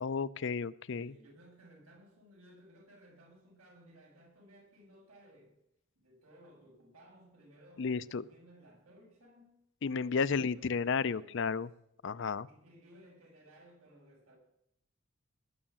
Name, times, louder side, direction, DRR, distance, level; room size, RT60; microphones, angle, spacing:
voice 1, 0.0-1.1 7.8-8.2 9.8-11.7 12.0-12.5, left 5 dB, 55° left, 17 dB, 0.5 m, -32 dB
voice 2, 0.9-5.6 6.0-9.6 10.2-11.7 12.4-14.4, equal, 90° right, -1 dB, 6.8 m, -59 dB
20.0 x 6.6 x 8.7 m, 0.78 s
head